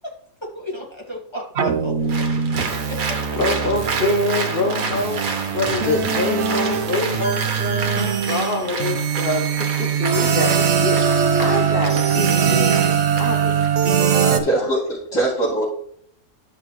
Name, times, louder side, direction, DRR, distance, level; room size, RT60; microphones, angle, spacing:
voice 1, 0.4-3.2, left 1 dB, 20° left, -2 dB, 2.1 m, -35 dB
sound 1, 1.6-14.4, right 7 dB, 55° right, 1.1 m, -21 dB
Applause, 2.1-13.7, right 4 dB, 90° right, 1.5 m, -30 dB
voice 2, 3.4-9.5 9.8-13.7 14.2-14.7, left 2 dB, 45° left, 1 dB, 1.0 m, -25 dB
voice 3, 14.2-15.7, right 2 dB, 70° left, -10 dB, 3.5 m, -22 dB
12.0 x 5.9 x 3.0 m, 0.63 s
omnidirectional pair, 1.5 m